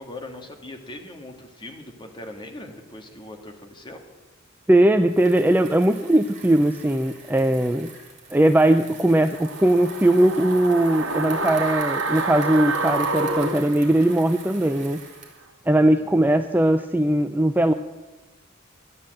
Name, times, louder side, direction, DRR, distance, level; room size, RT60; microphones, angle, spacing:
voice 1, 0.0-4.0 15.8-16.1, left 1 dB, 25° left, 3 dB, 1.7 m, -40 dB
voice 2, 4.7-7.9 8.3-15.0 15.7-17.7, right 1 dB, 10° right, 8 dB, 0.4 m, -19 dB
Bicycle, 4.9-15.4, right 5 dB, 40° right, 3.0 m, -45 dB
sound 1, 9.3-14.5 14.8-14.9, right 3 dB, 75° right, 1.4 m, -28 dB
12.5 x 10.0 x 7.6 m, 1.1 s
head